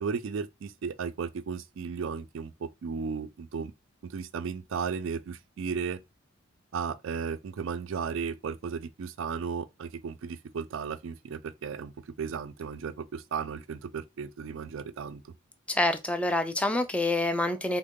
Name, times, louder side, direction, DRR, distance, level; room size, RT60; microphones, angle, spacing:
voice 1, 0.0-3.7 4.1-6.0 6.7-11.9 12.2-15.2, right 6 dB, 65° right, 0.4 m, -35 dB
voice 2, 15.7-17.8, left 2 dB, 5° left, 0.3 m, -27 dB
3.6 x 2.0 x 3.6 m
head